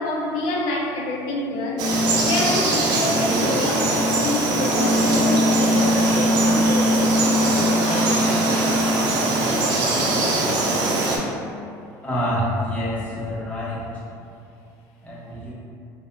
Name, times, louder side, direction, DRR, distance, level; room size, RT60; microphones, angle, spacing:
voice 1, 0.0-1.9 2.2-8.5, left 2 dB, 80° left, -1 dB, 0.4 m, -27 dB
Frog, 1.8-11.2, right 1 dB, 60° right, 0.5 m, -20 dB
voice 2, 12.0-13.8 15.0-15.5, equal, 15° left, -8 dB, 1.1 m, -26 dB
3.2 x 2.6 x 2.6 m, 2.5 s
supercardioid pair, 105°, 8 cm